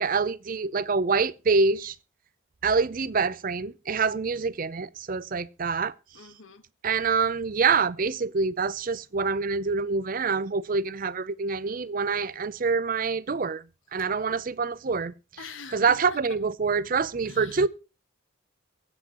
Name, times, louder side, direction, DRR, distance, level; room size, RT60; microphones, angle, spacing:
voice 1, 0.0-1.9 2.6-5.9 6.8-13.6 13.9-15.1 15.7-17.7, right 4 dB, 40° right, 0.5 m, -26 dB
voice 2, 6.1-6.6 13.9-14.1 15.4-16.2 17.2-17.7, left 5 dB, 70° left, 1.4 m, -44 dB
23.5 x 8.2 x 2.9 m
head